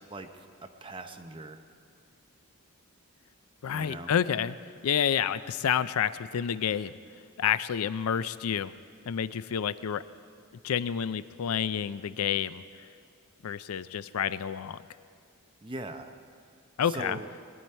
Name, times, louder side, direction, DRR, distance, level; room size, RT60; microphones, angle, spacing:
voice 1, 0.1-1.6 3.7-4.1 15.6-16.1 16.8-17.3, right 2 dB, 25° right, 6 dB, 0.7 m, -41 dB
voice 2, 3.6-4.6 4.8-6.9 7.4-8.7 9.1-10.0 10.6-12.6 13.4-14.8 16.8-17.2, left 8 dB, 80° left, 15 dB, 0.4 m, -29 dB
21.0 x 11.0 x 4.4 m, 2.2 s
head